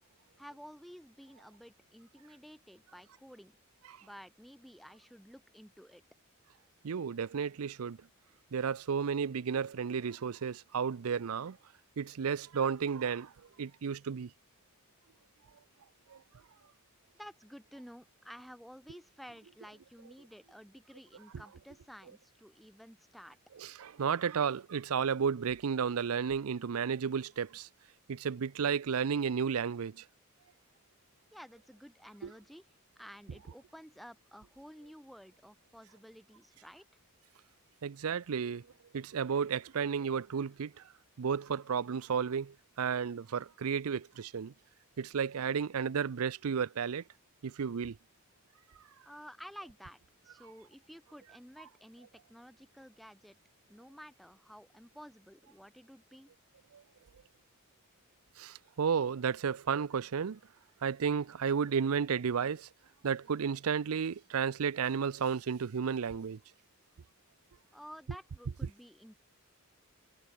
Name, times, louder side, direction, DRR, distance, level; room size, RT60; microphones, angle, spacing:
voice 1, 0.4-3.6 4.0-6.0 17.1-23.4 31.3-32.7 32.9-36.8 49.0-50.0 50.2-53.4 53.7-56.3 67.7-69.2, equal, ahead, 3.3 m, -52 dB
voice 2, 6.8-8.0 8.5-11.6 12.0-13.3 13.6-14.3 16.1-16.2 23.6-27.7 28.1-30.1 32.2-32.3 37.8-38.6 38.9-40.8 41.2-44.5 45.0-47.0 47.4-48.0 56.7-56.8 58.4-60.4 60.8-62.7 63.0-66.4, right 6 dB, 80° right, 0.5 m, -33 dB
head